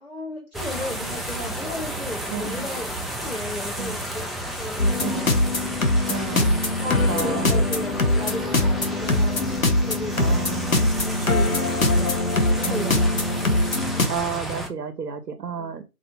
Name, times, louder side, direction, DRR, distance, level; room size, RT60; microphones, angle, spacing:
voice 1, 0.0-2.9 3.2-5.3 5.7-6.1 6.7-9.4 9.8-11.5 11.7-12.2 12.6-13.5 15.6-15.7, left 1 dB, 40° left, -3 dB, 0.9 m, -35 dB
sound 1, 0.5-14.7, right 1 dB, ahead, 0.3 m, -32 dB
voice 2, 2.3-2.7 3.8-4.0 5.0-5.3 6.1-6.6 7.1-7.6 10.2-10.8 12.6-13.1 14.1-15.8, right 6 dB, 85° right, 9 dB, 0.6 m, -31 dB
sound 2, 4.8-14.1, left 2 dB, 60° left, 0.6 m, -22 dB
2.5 x 2.0 x 2.7 m, 0.27 s
figure-of-eight pair, 175°, 46 cm